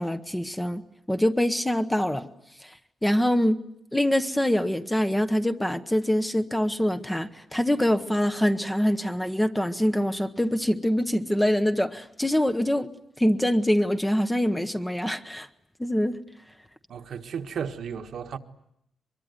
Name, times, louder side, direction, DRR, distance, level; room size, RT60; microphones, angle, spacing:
voice 1, 0.0-2.3 2.6-2.7 3.0-3.6 3.9-12.9 13.2-15.5 15.8-16.2, equal, 5° left, 1.0 m, -24 dB
voice 2, 16.9-18.4, right 7 dB, 60° right, 1.5 m, -34 dB
24.0 x 22.5 x 9.4 m
wide cardioid pair, 170°, 0 cm